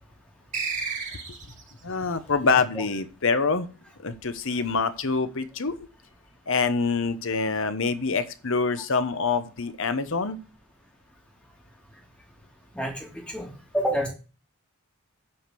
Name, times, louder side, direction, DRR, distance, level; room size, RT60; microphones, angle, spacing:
sound 1, 0.5-1.7, right 5 dB, 35° right, 2.3 m, -31 dB
voice 1, 1.8-3.7 4.0-5.8 6.5-10.4, left 4 dB, 60° left, 11 dB, 1.0 m, -25 dB
voice 2, 12.7-14.1, equal, 5° left, -1 dB, 2.9 m, -28 dB
8.6 x 5.0 x 7.7 m, 0.34 s
head